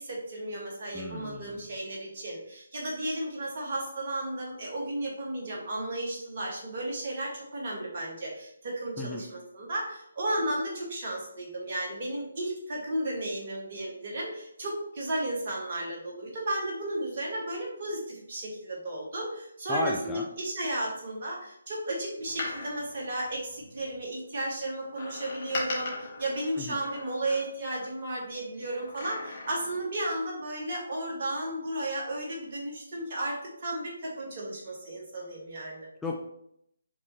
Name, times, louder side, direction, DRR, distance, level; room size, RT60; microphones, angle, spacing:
voice 1, 0.0-35.9, right 1 dB, 40° right, -2 dB, 1.6 m, -34 dB
voice 2, 0.9-1.7 9.0-9.2 19.7-20.3 26.6-26.8 36.0-36.2, left 2 dB, 5° left, -2 dB, 0.4 m, -34 dB
Door, 22.2-24.0 24.9-27.8 28.7-29.9 30.2-30.3, left 2 dB, 35° left, 1.5 m, -39 dB
5.2 x 3.3 x 2.9 m, 0.73 s
figure-of-eight pair, 145°, 0 cm